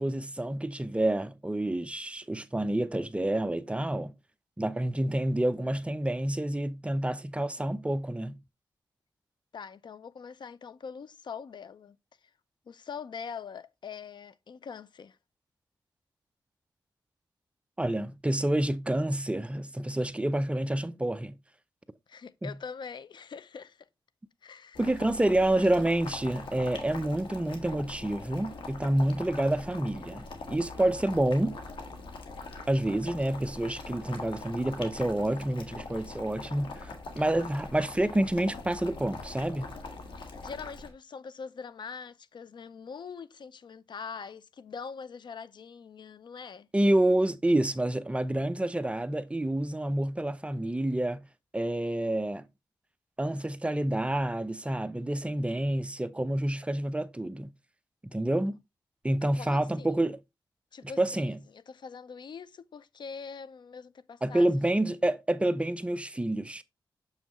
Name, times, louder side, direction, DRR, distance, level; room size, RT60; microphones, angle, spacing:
voice 1, 0.0-4.1 4.6-8.4 17.8-21.4 22.4-22.5 24.8-31.6 32.7-39.7 46.7-51.2 51.5-52.5 53.2-57.5 58.0-58.6 59.0-60.2 61.0-61.4 64.2-66.6, right 1 dB, 15° right, 0.5 m, -28 dB
voice 2, 9.5-12.0 12.7-15.2 22.1-23.9 24.4-25.0 28.9-29.0 30.8-30.9 40.2-46.7 49.9-50.0 59.4-59.9 60.7-64.5, left 6 dB, 65° left, 0.5 m, -43 dB
Boiling, 24.8-40.9, left 3 dB, 85° left, 1.6 m, -43 dB
7.0 x 5.6 x 3.0 m
cardioid pair, 75°, 8 cm